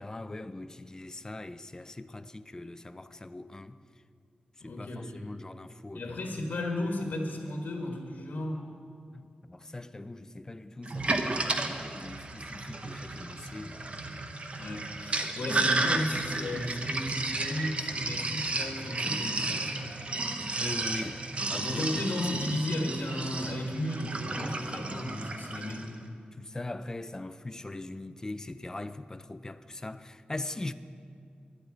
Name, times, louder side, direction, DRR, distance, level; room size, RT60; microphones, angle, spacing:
voice 1, 0.0-3.8 4.6-6.1 9.1-13.8 20.6-21.9 22.3-22.5 26.4-30.7, left 2 dB, 20° left, 0.4 m, -41 dB
voice 2, 4.6-5.2 5.9-8.6 14.6-20.0 21.6-26.0, left 1 dB, 75° left, 1.6 m, -34 dB
Sink (filling or washing), 10.9-25.9, right 2 dB, 40° right, 0.9 m, -33 dB
11.5 x 8.2 x 9.4 m
wide cardioid pair, 135°, 3 cm